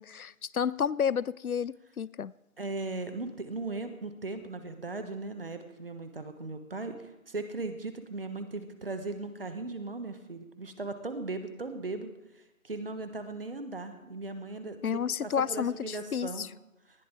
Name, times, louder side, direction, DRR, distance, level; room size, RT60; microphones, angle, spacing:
voice 1, 0.0-2.3 14.8-16.5, left 7 dB, 85° left, 22 dB, 0.6 m, -31 dB
voice 2, 2.6-12.1 12.6-14.8 15.2-16.5, right 3 dB, 40° right, 9 dB, 1.4 m, -38 dB
19.0 x 12.5 x 3.7 m, 0.96 s
figure-of-eight pair, 155°, 42 cm